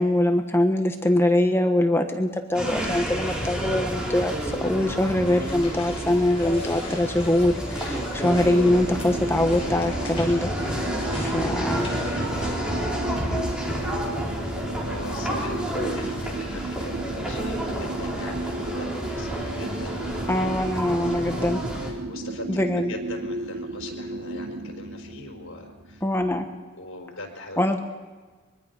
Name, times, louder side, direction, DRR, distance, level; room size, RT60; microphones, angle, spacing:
voice 1, 0.0-10.5 11.2-12.0 20.3-21.6 22.5-22.9 26.0-26.4 27.6-27.8, left 1 dB, 10° left, 5 dB, 1.2 m, -23 dB
sound 1, 2.5-21.9, equal, 5° right, 4.2 m, -30 dB
sound 2, 5.2-12.7, left 3 dB, 30° left, 6.2 m, -42 dB
sound 3, 8.2-26.4, right 2 dB, 80° right, 1.2 m, -34 dB
voice 2, 14.0-20.3 20.7-26.0 26.8-27.8, left 2 dB, 75° left, 2 dB, 5.0 m, -41 dB
24.5 x 23.0 x 5.5 m, 1.4 s
head